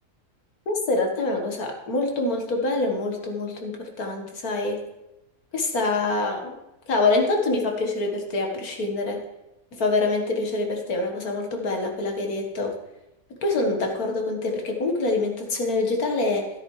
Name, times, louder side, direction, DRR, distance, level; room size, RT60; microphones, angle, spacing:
voice 1, 0.7-4.8 5.5-6.6 6.9-9.2 9.7-12.8 13.4-16.5, left 2 dB, 80° left, 2 dB, 1.9 m, -25 dB
13.0 x 10.5 x 3.2 m, 0.94 s
omnidirectional pair, 1.5 m